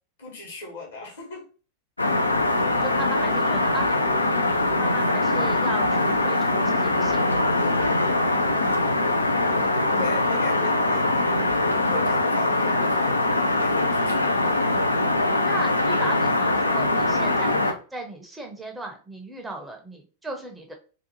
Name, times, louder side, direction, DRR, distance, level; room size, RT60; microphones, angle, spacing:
voice 1, 0.2-1.5 10.0-11.2 11.8-14.6, left 3 dB, 65° left, 1.1 m, -38 dB
sound 1, 2.0-17.7, left 2 dB, 80° left, 0.3 m, -22 dB
voice 2, 2.8-4.0 4.4-7.9 15.4-20.7, right 2 dB, 10° right, 0.5 m, -36 dB
2.5 x 2.4 x 2.7 m
figure-of-eight pair, 90°, 0 cm